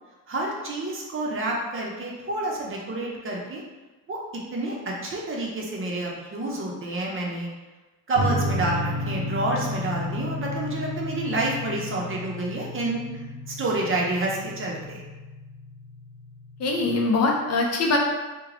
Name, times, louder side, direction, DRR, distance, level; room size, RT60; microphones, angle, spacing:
voice 1, 0.3-3.6 4.1-7.5 8.1-13.1 13.5-15.0, right 2 dB, 35° right, -2 dB, 0.6 m, -29 dB
sound 1, 8.1-17.1, left 1 dB, 85° right, 0.6 m, -33 dB
voice 2, 16.6-18.0, left 3 dB, 45° left, 0 dB, 0.5 m, -22 dB
3.2 x 2.1 x 3.7 m, 1.2 s
cardioid pair, 140°, 36 cm